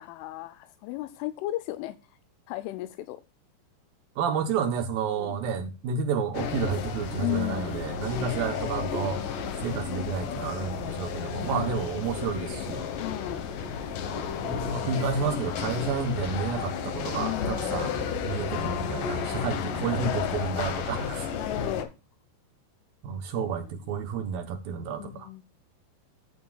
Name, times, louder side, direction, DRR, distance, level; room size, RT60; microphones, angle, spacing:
voice 1, 0.0-2.0 2.5-3.2 5.1-5.4 7.2-7.7 8.0-8.4 9.4-9.7 10.6-11.0 11.5-11.9 13.0-13.5 17.2-17.7 19.3-19.6 21.4-21.9 23.4-23.5 25.0-25.4, left 17 dB, 85° left, 3.1 m, -35 dB
voice 2, 4.2-9.4 9.6-12.9 14.4-18.0 18.2-21.3 23.0-25.3, right 5 dB, 85° right, 2.0 m, -30 dB
sound 1, 6.3-21.8, left 7 dB, 70° left, 2.1 m, -32 dB
14.5 x 8.5 x 2.3 m
omnidirectional pair, 5.4 m